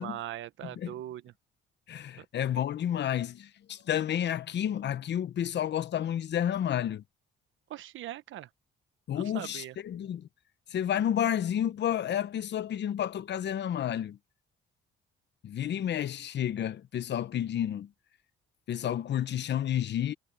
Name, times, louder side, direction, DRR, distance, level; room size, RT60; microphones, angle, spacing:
voice 1, 0.0-1.3 7.7-8.5 9.1-9.7, right 12 dB, 80° right, 1.1 m, -40 dB
voice 2, 0.6-0.9 1.9-7.0 9.1-10.3 10.7-14.2 15.4-17.9 18.7-20.1, left 10 dB, 60° left, 1.0 m, -30 dB
cardioid pair, 90°, 20 cm